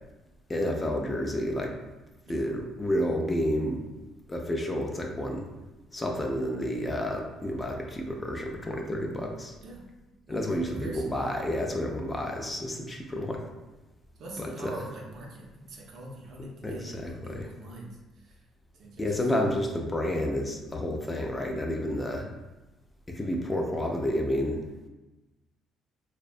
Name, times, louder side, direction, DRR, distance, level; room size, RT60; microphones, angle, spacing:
voice 1, 0.5-1.7 2.3-3.8 4.3-5.5 5.9-9.5 10.3-13.4 14.4-14.7 16.6-17.5 19.0-22.3 23.1-24.6, left 1 dB, 20° left, 1 dB, 0.3 m, -30 dB
voice 2, 10.3-11.3 14.2-18.4 18.8-19.3, right 2 dB, 60° right, -2 dB, 0.6 m, -43 dB
2.6 x 2.1 x 2.4 m, 1.1 s
cardioid pair, 110°, 0 cm